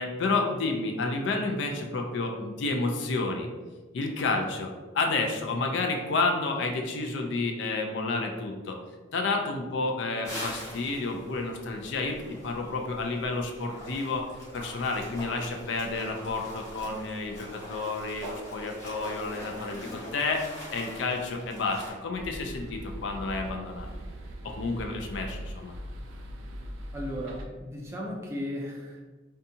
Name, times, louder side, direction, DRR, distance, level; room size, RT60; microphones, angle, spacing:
voice 1, 0.0-3.5 3.9-8.8 9.1-14.2 14.5-20.4 20.7-23.9 24.4-25.7, left 3 dB, 65° left, 3 dB, 0.4 m, -30 dB
sound 1, 10.2-21.9, equal, 15° left, 0.8 m, -43 dB
sound 2, 22.1-27.5, equal, 90° right, 0.4 m, -40 dB
voice 2, 26.9-29.0, equal, 15° right, -3 dB, 0.4 m, -35 dB
2.6 x 2.3 x 2.6 m, 1.3 s
head